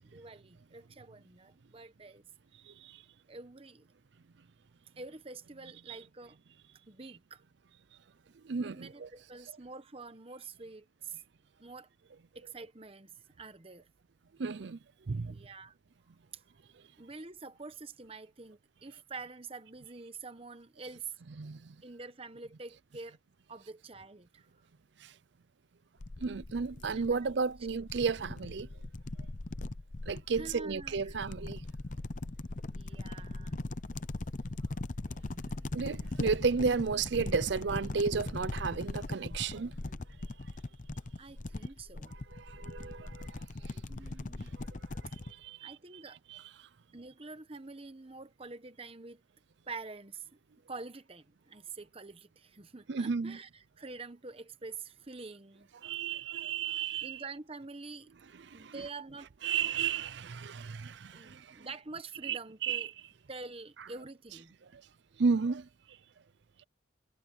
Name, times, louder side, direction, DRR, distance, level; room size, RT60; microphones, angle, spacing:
voice 1, 0.0-2.2 3.3-3.9 5.0-6.4 6.9-7.4 8.6-11.2 11.6-11.9 12.3-13.9 15.3-15.8 16.3-16.4 17.0-21.1 21.8-23.2 23.5-24.5 26.9-27.3 30.3-31.2 32.7-33.6 41.2-42.1 43.9-44.5 45.6-46.2 46.9-49.2 49.7-50.3 50.7-55.7 57.0-58.1 58.5-59.3 61.1-62.9 63.3-64.5, right 3 dB, 30° right, 1.0 m, -46 dB
voice 2, 2.7-3.0 8.4-9.1 14.4-14.8 15.1-15.4 21.4-21.8 25.0-25.1 26.2-28.7 30.1-31.6 35.3-35.4 35.7-39.7 42.3-43.8 44.6-44.7 45.2-45.7 46.3-46.4 52.9-53.4 55.8-57.2 58.5-58.8 59.4-61.7 62.2-62.9 64.7-64.8 65.2-65.7, right 5 dB, 60° right, 0.5 m, -33 dB
sound 1, 26.0-45.3, left 2 dB, 40° left, 0.7 m, -40 dB
head